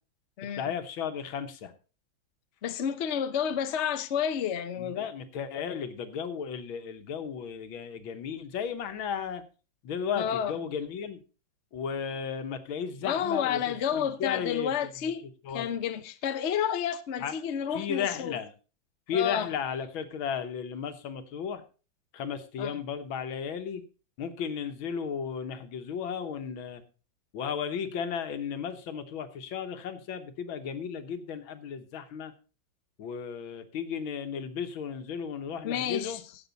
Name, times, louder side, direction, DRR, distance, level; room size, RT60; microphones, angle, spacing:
voice 1, 0.5-1.7 4.8-9.4 9.8-11.2 11.7-14.7 15.4-15.7 17.2-17.3 17.7-18.5 19.1-21.6 22.1-23.8 24.2-26.8 27.3-32.3 33.0-36.2, left 7 dB, 85° left, 1.9 m, -34 dB
voice 2, 2.6-5.1 10.2-10.5 13.0-15.3 15.5-18.4 19.1-19.5 22.6-22.7 35.6-36.2, left 8 dB, 55° left, 0.8 m, -30 dB
16.0 x 6.6 x 4.0 m
omnidirectional pair, 2.2 m